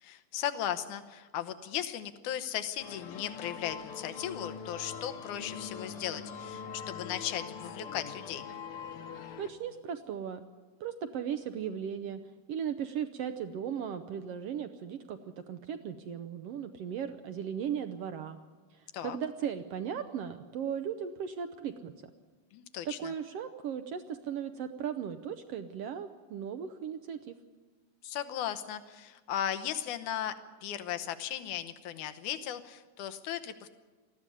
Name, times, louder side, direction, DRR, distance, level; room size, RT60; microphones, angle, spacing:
voice 1, 0.0-8.5 18.9-19.2 22.5-23.1 28.0-30.4 30.6-33.7, left 10 dB, 80° left, 9 dB, 2.4 m, -36 dB
sound 1, 2.8-9.5, left 6 dB, 60° left, 1.8 m, -43 dB
voice 2, 9.4-10.4 10.8-12.2 12.5-18.4 18.7-21.9 22.8-27.3, right 8 dB, 75° right, 8 dB, 1.5 m, -37 dB
19.5 x 14.0 x 9.8 m, 1.3 s
omnidirectional pair, 3.5 m